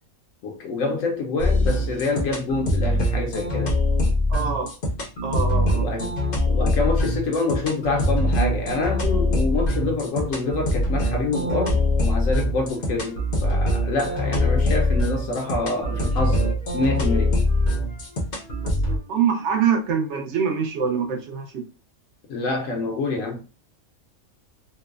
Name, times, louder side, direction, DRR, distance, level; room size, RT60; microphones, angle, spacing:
voice 1, 0.4-3.8 5.7-17.4 22.3-23.4, left 3 dB, 70° left, 0.9 m, -27 dB
sound 1, 1.4-19.0, left 1 dB, 50° left, 0.7 m, -23 dB
voice 2, 4.3-4.7 5.2-5.9 18.6-21.6, right 6 dB, 65° right, 0.8 m, -25 dB
Wind instrument woodwind instrument, 12.6-15.3 15.7-19.1, left 1 dB, 45° right, 0.5 m, -43 dB
3.0 x 2.0 x 2.3 m
omnidirectional pair, 1.5 m